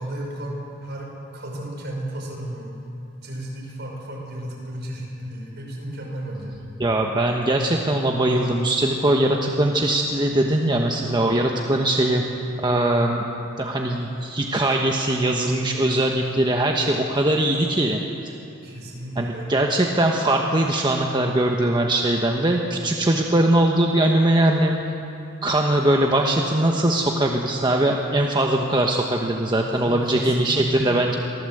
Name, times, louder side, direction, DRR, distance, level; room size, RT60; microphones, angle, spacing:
voice 1, 0.0-2.7 3.2-6.6 18.6-19.5 29.7-31.0, right 1 dB, 60° right, -1 dB, 5.5 m, -33 dB
voice 2, 6.8-12.2 12.6-13.2 13.6-18.3 19.2-24.8 25.4-31.1, right 1 dB, 25° right, 1 dB, 1.2 m, -21 dB
24.0 x 15.5 x 7.9 m, 2.8 s
head